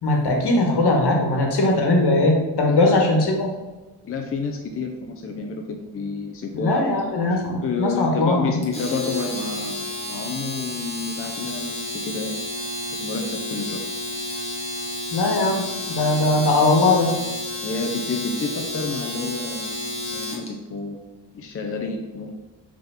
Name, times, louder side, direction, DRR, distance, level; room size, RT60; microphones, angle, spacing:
voice 1, 0.0-3.5 6.5-8.5 15.1-15.6 15.9-17.1, left 2 dB, 65° left, 1 dB, 1.4 m, -20 dB
voice 2, 2.7-3.0 4.0-12.4 13.0-13.8 17.6-21.0 21.3-22.3, left 4 dB, 35° left, 3 dB, 0.5 m, -30 dB
Domestic sounds home sounds, 8.6-20.5, left 1 dB, 15° left, 1.1 m, -31 dB
5.6 x 3.7 x 5.6 m, 1.2 s
wide cardioid pair, 180°, 42 cm